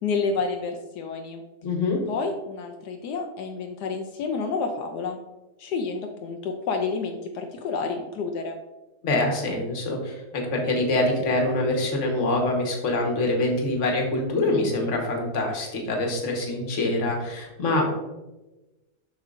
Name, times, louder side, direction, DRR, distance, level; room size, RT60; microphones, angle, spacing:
voice 1, 0.0-1.4 2.1-5.2 5.6-8.6, left 4 dB, 80° left, 3 dB, 1.2 m, -29 dB
voice 2, 1.6-2.0 9.0-17.9, left 2 dB, 50° left, 1 dB, 1.5 m, -25 dB
7.2 x 6.3 x 2.5 m, 1.1 s
omnidirectional pair, 1.7 m